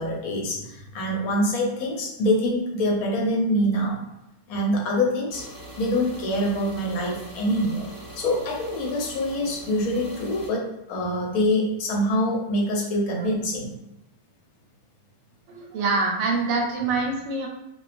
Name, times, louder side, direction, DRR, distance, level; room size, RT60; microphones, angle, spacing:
voice 1, 0.0-4.0 4.5-5.5 5.8-7.9 8.1-13.7, left 1 dB, 80° left, -1 dB, 1.0 m, -25 dB
sound 1, 5.3-10.5, equal, 15° left, 0.7 m, -42 dB
voice 2, 15.5-17.5, right 3 dB, 65° right, 0 dB, 0.7 m, -25 dB
2.4 x 2.1 x 2.4 m, 0.88 s
omnidirectional pair, 1.6 m